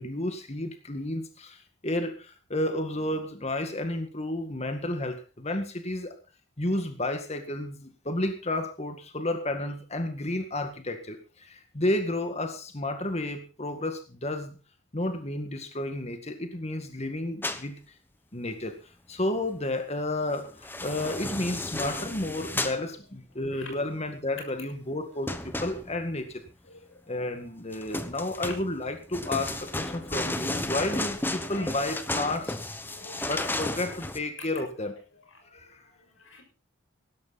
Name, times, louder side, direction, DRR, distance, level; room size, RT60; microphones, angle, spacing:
voice 1, 0.0-6.1 6.6-14.6 14.9-17.8 18.3-18.8 19.1-26.4 27.1-32.6 33.2-34.9 35.5-35.8, left 1 dB, 30° left, 1.9 m, -31 dB
sound 1, 17.4-17.7 20.4-22.8 25.3-26.2 27.7-34.2, left 2 dB, 10° left, 1.0 m, -33 dB
voice 2, 23.4-23.8 26.6-28.1 28.5-28.6 31.5-31.9 32.9-33.6 35.1-36.4, left 2 dB, 70° left, 6.4 m, -50 dB
17.5 x 12.5 x 4.2 m
head